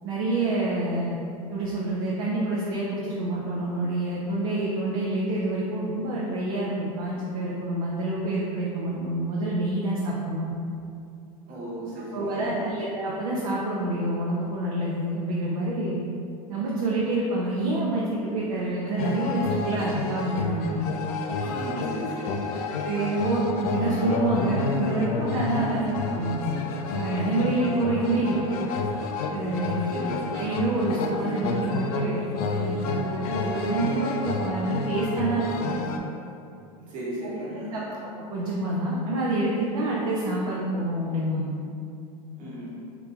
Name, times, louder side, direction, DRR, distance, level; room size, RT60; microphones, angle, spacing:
voice 1, 0.0-1.2 1.5-10.5 12.1-16.0 16.5-20.8 22.5-26.4 26.9-28.6 29.3-29.9 30.3-32.2 32.5-35.7 37.7-37.8 38.3-41.6, right 2 dB, 75° right, -5 dB, 0.6 m, -27 dB
voice 2, 11.5-12.7 21.4-22.6 25.7-26.1 29.9-30.1 36.9-37.9 42.4-42.7, right 1 dB, 45° right, -7 dB, 1.0 m, -35 dB
sound 1, 19.0-36.0, left 3 dB, 80° left, 0.4 m, -30 dB
3.7 x 2.9 x 2.3 m, 2.6 s
supercardioid pair, 115°, 19 cm